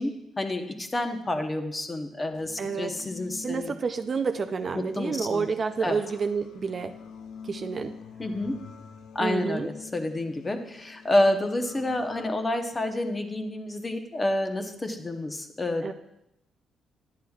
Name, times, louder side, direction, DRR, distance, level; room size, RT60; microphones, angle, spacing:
voice 1, 0.0-3.7 4.7-5.5 5.8-6.0 8.2-8.6 9.1-15.9, left 1 dB, 20° left, 6 dB, 0.8 m, -29 dB
sound 1, 2.3-12.3, left 6 dB, 85° left, 0.7 m, -46 dB
voice 2, 2.6-2.9 3.4-6.9 7.5-7.9 9.2-9.7 15.8-15.9, right 5 dB, 35° right, 8 dB, 0.4 m, -29 dB
11.0 x 10.0 x 2.4 m, 0.83 s
cardioid pair, 125°, 0 cm